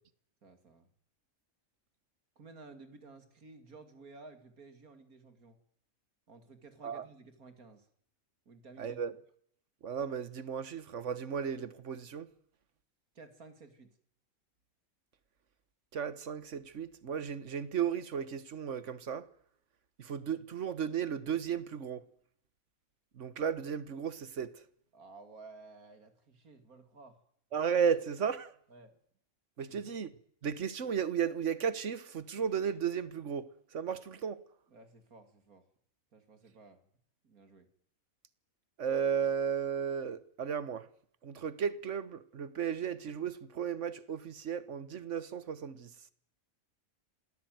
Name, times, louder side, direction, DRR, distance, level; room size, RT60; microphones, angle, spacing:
voice 1, 0.4-0.9 2.4-5.6 6.3-7.9 8.5-9.0 13.1-14.0 24.9-27.2 28.7-29.0 29.7-29.8 34.7-35.6 36.1-36.8 37.2-37.7, right 3 dB, 90° right, 3.0 m, -54 dB
voice 2, 8.8-9.1 9.8-12.3 15.9-19.3 20.0-22.0 23.1-24.6 27.5-28.5 29.6-30.1 30.4-34.4 38.8-40.9 41.2-45.9, right 7 dB, 60° right, 1.5 m, -34 dB
26.5 x 17.5 x 9.4 m
omnidirectional pair, 1.5 m